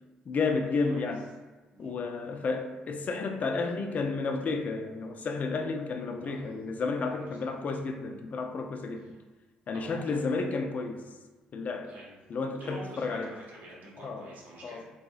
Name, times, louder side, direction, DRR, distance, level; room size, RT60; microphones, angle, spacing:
voice 1, 0.3-1.2 1.8-9.1 9.7-11.0 11.5-11.9 12.3-13.3 14.0-14.3 14.6-14.8, left 4 dB, 45° left, 0.4 m, -32 dB
voice 2, 0.9-1.2 1.7-1.9 6.2-6.5 7.2-7.5 9.0-9.2 9.7-10.3 11.9-12.2 12.6-14.8, right 1 dB, 55° right, 1.1 m, -48 dB
2.7 x 2.4 x 2.3 m
hypercardioid pair, 50°, 4 cm